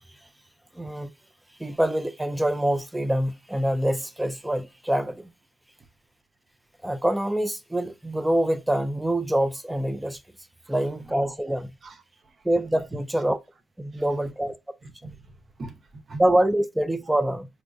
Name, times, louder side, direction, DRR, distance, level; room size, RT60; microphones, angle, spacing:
voice 1, 0.7-1.1 1.6-5.3 6.8-10.2 10.7-11.7 12.4-13.4 13.8-14.6 15.0-15.1 16.2-17.5, right 1 dB, 5° right, 0.4 m, -25 dB
voice 2, 11.8-12.5 13.9-14.3 14.8-16.2, right 2 dB, 40° right, 0.7 m, -43 dB
4.3 x 2.4 x 2.5 m
cardioid pair, 90°, 0 cm